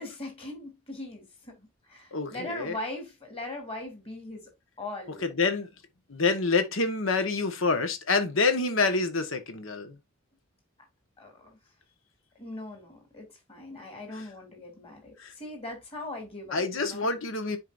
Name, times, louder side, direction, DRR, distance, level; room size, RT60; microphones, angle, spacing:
voice 1, 0.0-4.5 4.8-5.2 11.2-11.6 12.3-17.1, left 2 dB, 30° left, 3.1 m, -40 dB
voice 2, 2.1-2.8 5.2-5.7 6.1-10.0 14.1-14.3 15.2-15.3 16.5-17.6, left 3 dB, 70° left, 1.4 m, -27 dB
10.0 x 4.7 x 2.6 m
head